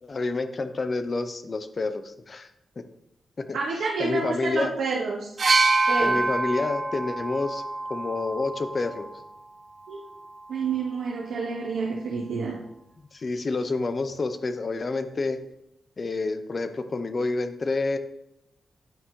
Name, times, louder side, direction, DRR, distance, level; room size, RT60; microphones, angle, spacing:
voice 1, 0.0-2.5 2.8-2.9 3.4-3.6 4.0-4.7 6.0-7.6 7.9-9.1 13.1-15.4 16.0-18.0, left 3 dB, 45° left, 10 dB, 0.6 m, -28 dB
voice 2, 3.5-5.3 5.9-6.2 9.9-10.0 10.5-12.6, right 4 dB, 85° right, -2 dB, 0.8 m, -29 dB
sound 1, 5.4-9.2 10.2-10.4, right 3 dB, 50° right, 0.5 m, -25 dB
9.1 x 5.5 x 3.1 m, 0.83 s
cardioid pair, 70°, 0 cm